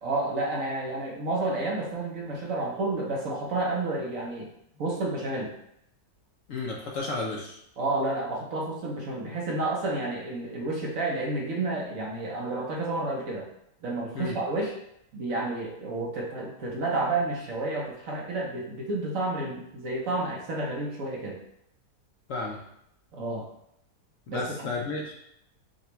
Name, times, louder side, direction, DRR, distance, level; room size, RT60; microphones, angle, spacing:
voice 1, 0.0-4.5 4.8-5.5 7.8-13.5 13.8-14.7 15.1-21.4 23.1-23.5 24.3-24.7, right 2 dB, 60° right, -1 dB, 1.2 m, -30 dB
voice 2, 6.5-7.6 14.1-14.4 22.3-22.6 24.3-25.2, left 3 dB, 65° left, -1 dB, 0.9 m, -32 dB
6.6 x 2.3 x 3.0 m, 0.76 s
omnidirectional pair, 1.7 m